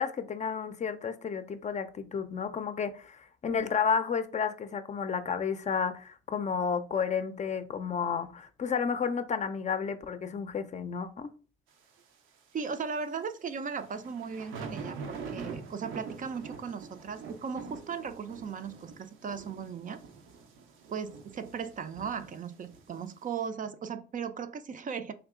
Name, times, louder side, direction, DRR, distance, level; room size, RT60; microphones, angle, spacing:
voice 1, 0.0-11.3, left 6 dB, 35° left, 0.5 m, -31 dB
voice 2, 12.5-20.0 20.9-25.1, right 6 dB, 40° right, 0.5 m, -37 dB
sound 1, 13.7-23.3, right 5 dB, 90° right, 0.7 m, -44 dB
3.4 x 2.8 x 3.6 m
cardioid pair, 90°, 20 cm